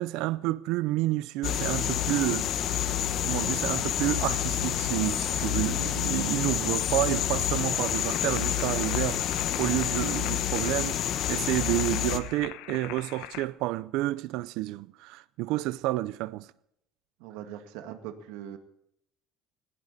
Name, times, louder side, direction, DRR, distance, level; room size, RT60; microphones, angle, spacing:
voice 1, 0.0-11.0 11.3-16.5, right 17 dB, 70° right, 0.5 m, -30 dB
sound 1, 1.4-12.2, left 10 dB, 45° left, 1.2 m, -28 dB
sound 2, 7.7-13.4, left 14 dB, 75° left, 1.1 m, -42 dB
voice 2, 17.2-18.6, right 10 dB, 90° right, 2.0 m, -41 dB
19.5 x 17.5 x 4.2 m
cardioid pair, 160°, 0 cm